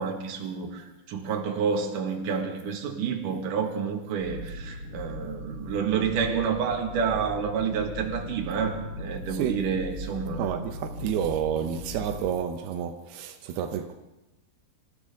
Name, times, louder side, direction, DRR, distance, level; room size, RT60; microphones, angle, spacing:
voice 1, 0.0-10.5, right 6 dB, 55° right, 2.6 m, -29 dB
sound 1, 4.2-12.3, left 1 dB, 80° left, 1.5 m, -39 dB
voice 2, 9.3-9.8 10.0-13.9, right 9 dB, 85° right, 2.2 m, -30 dB
26.5 x 15.0 x 3.6 m
omnidirectional pair, 5.4 m